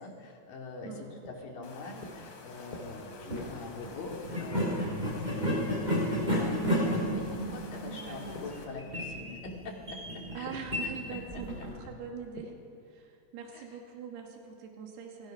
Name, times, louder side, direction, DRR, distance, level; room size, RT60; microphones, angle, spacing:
voice 1, 0.0-6.6 7.0-10.5 10.8-11.4 13.5-13.6, left 3 dB, 60° left, 0 dB, 4.1 m, -44 dB
voice 2, 0.8-1.3 7.9-8.4 10.3-12.6 12.9-15.3, right 6 dB, 75° right, 1 dB, 4.2 m, -43 dB
sound 1, 1.2-8.6 8.9-12.8, left 1 dB, 30° left, 2.3 m, -50 dB
sound 2, 1.6-8.7, left 3 dB, 80° left, 4.8 m, -49 dB
sound 3, 3.2-3.5 4.2-11.8, equal, 10° right, 7.3 m, -32 dB
27.5 x 20.0 x 5.9 m, 2.4 s
omnidirectional pair, 4.7 m